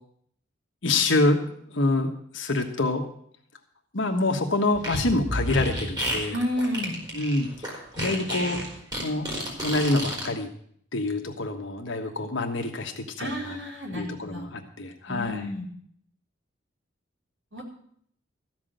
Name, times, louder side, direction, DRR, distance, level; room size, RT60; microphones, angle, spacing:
voice 1, 0.8-3.0 3.9-6.4 7.1-8.6 9.0-9.3 9.6-10.5 10.9-13.6 14.0-15.5, left 2 dB, 70° left, 3 dB, 1.4 m, -26 dB
Fart, 4.7-10.3, equal, 20° right, 3.8 m, -31 dB
voice 2, 6.3-7.0 13.2-14.5 15.1-15.7 17.5-17.6, left 1 dB, 70° right, -2 dB, 4.4 m, -31 dB
14.0 x 6.1 x 9.0 m, 0.64 s
head